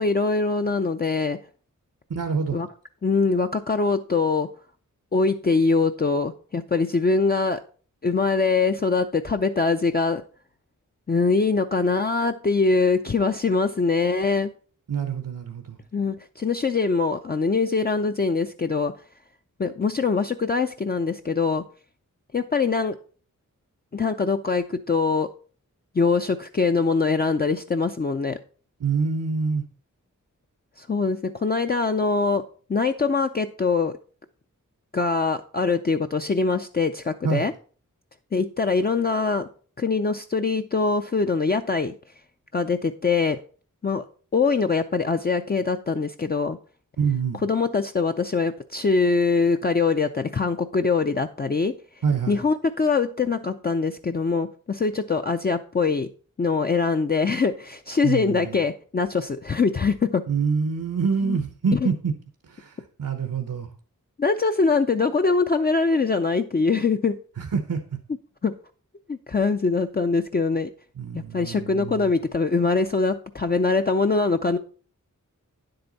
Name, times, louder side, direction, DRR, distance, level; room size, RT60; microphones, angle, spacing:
voice 1, 0.0-1.4 2.5-2.7 3.0-4.5 5.1-7.6 8.0-10.2 11.1-14.5 15.9-18.9 19.6-21.6 22.3-22.9 23.9-25.3 25.9-28.4 30.8-32.4 32.7-33.9 34.9-37.5 38.3-39.5 39.8-41.9 42.5-43.4 43.8-44.0 44.3-46.6 47.4-51.7 52.3-56.1 56.4-60.2 61.2-61.4 61.7-61.9 64.2-67.2 68.4-68.5 69.1-70.7 71.1-74.6, left 4 dB, 30° left, 6 dB, 0.5 m, -23 dB
voice 2, 2.1-2.6 14.9-15.8 28.8-29.6 37.2-37.5 47.0-47.4 52.0-52.4 58.0-58.6 60.3-62.1 62.5-63.7 67.4-67.8 71.0-72.1, right 5 dB, 80° right, 7 dB, 1.0 m, -26 dB
9.6 x 7.8 x 4.0 m, 0.40 s
wide cardioid pair, 90°, 32 cm